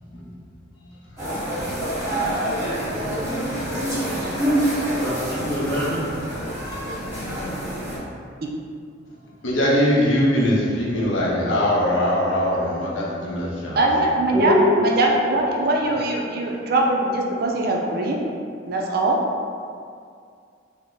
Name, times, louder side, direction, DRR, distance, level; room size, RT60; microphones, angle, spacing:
sound 1, 1.2-8.0, right 1 dB, 15° right, 1.0 m, -26 dB
voice 1, 4.9-6.0 14.3-14.8, left 1 dB, 5° left, -9 dB, 0.7 m, -22 dB
voice 2, 9.4-13.8 14.3-14.4, equal, 70° left, -5 dB, 0.7 m, -21 dB
voice 3, 13.8-14.5 14.8-18.2 18.7-19.2, right 2 dB, 50° right, 0 dB, 0.4 m, -21 dB
3.4 x 2.0 x 3.8 m, 2.3 s
head